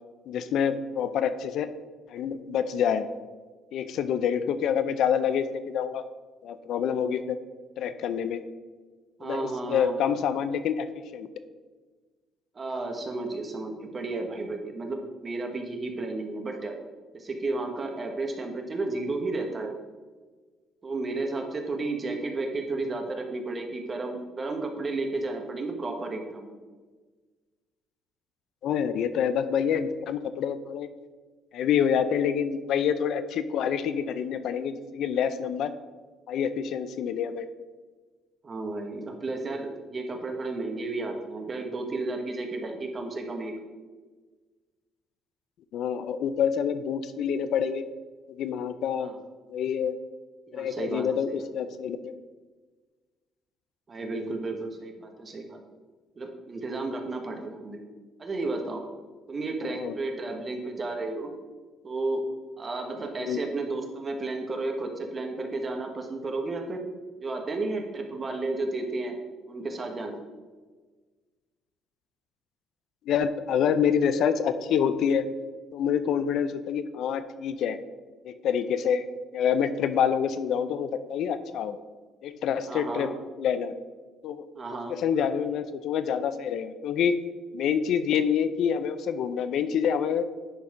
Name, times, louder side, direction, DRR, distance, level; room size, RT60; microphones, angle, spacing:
voice 1, 0.3-1.7 2.1-3.1 3.7-6.0 6.4-7.4 7.8-8.4 9.2-10.9 11.1-11.3 28.6-30.9 31.5-35.7 36.3-37.5 45.7-47.8 48.3-49.1 49.5-50.0 50.5-52.1 54.1-54.4 59.6-60.0 63.2-63.4 73.1-75.3 75.7-77.8 78.2-79.1 79.3-81.8 82.2-83.1 83.4-83.7 84.2-84.4 84.9-87.2 87.5-90.3, left 8 dB, 70° left, 12 dB, 0.5 m, -27 dB
voice 2, 9.2-10.0 12.5-16.7 17.1-19.7 20.8-26.5 38.4-43.5 49.0-49.2 50.5-51.7 53.9-55.6 56.2-57.8 58.2-58.8 59.3-61.3 61.8-62.2 62.6-66.8 67.2-69.2 69.5-70.2 82.7-83.1 84.5-84.9, right 2 dB, 30° right, 3 dB, 1.4 m, -33 dB
10.0 x 4.2 x 4.9 m, 1.4 s
cardioid pair, 110°, 0 cm